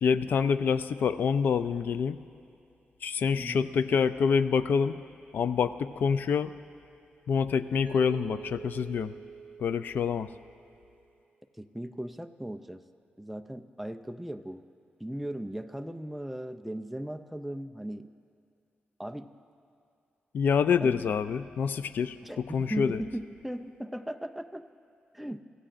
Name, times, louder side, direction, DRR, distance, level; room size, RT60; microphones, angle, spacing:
voice 1, 0.0-2.2 3.0-5.0 5.3-6.5 7.3-9.2 9.6-10.3 20.3-22.2 22.5-23.0, left 6 dB, 65° left, 12 dB, 0.4 m, -26 dB
voice 2, 3.3-3.7 11.6-12.8 13.2-14.6 15.0-18.1 19.0-19.3 20.8-21.0 22.2-24.7 25.1-25.4, right 1 dB, ahead, 7 dB, 0.4 m, -37 dB
Mallet percussion, 7.9-10.8, right 6 dB, 50° right, 3.1 m, -45 dB
25.5 x 15.0 x 2.5 m, 2.5 s
wide cardioid pair, 175°, 3 cm